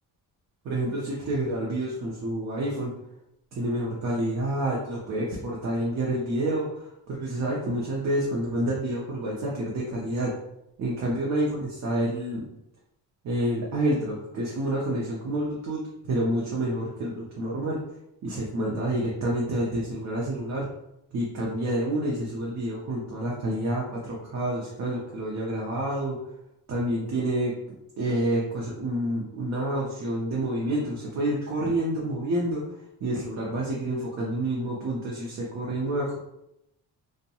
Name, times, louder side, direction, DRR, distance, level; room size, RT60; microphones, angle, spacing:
voice 1, 0.6-2.9 3.5-10.3 10.8-12.4 13.2-17.8 18.2-20.7 21.1-26.2 26.7-27.5 28.0-32.8 33.0-36.2, right 1 dB, 50° right, -4 dB, 0.5 m, -28 dB
2.6 x 2.1 x 2.7 m, 0.84 s
cardioid pair, 170°, 37 cm